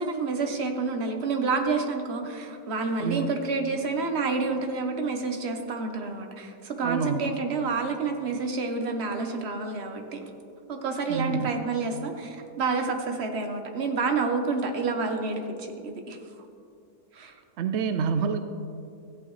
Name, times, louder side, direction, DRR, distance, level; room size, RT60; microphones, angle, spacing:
voice 1, 0.0-10.3 10.7-16.2 17.1-17.3, right 4 dB, 45° right, 4 dB, 1.1 m, -29 dB
voice 2, 6.8-7.3 11.1-11.6 17.6-18.4, right 6 dB, 80° right, 9 dB, 0.6 m, -27 dB
14.5 x 8.5 x 3.1 m, 2.4 s
omnidirectional pair, 1.7 m